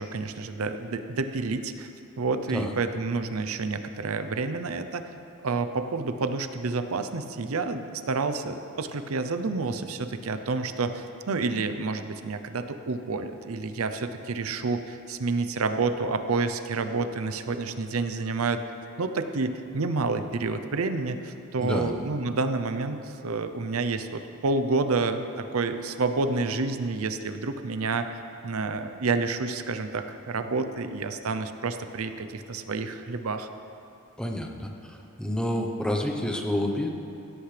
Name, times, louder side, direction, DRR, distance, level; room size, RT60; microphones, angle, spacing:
voice 1, 0.0-1.9 2.2-5.0 5.4-18.6 19.0-33.5, right 3 dB, 85° right, 9 dB, 0.7 m, -29 dB
voice 2, 21.6-21.9 34.2-36.9, left 1 dB, 5° left, 2 dB, 0.9 m, -29 dB
16.5 x 14.0 x 3.4 m, 2.7 s
head